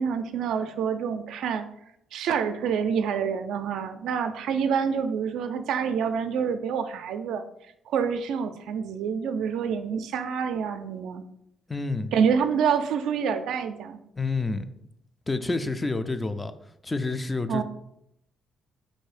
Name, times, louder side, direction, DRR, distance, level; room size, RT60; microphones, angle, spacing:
voice 1, 0.0-1.6 2.1-7.4 7.9-11.2 12.1-14.0 17.5-17.6, right 7 dB, 80° right, 8 dB, 0.4 m, -27 dB
voice 2, 11.7-12.1 14.2-14.7 15.3-16.5 16.8-17.6, left 3 dB, 20° left, 10 dB, 0.4 m, -28 dB
4.0 x 2.7 x 4.8 m, 0.78 s
cardioid pair, 90°, 0 cm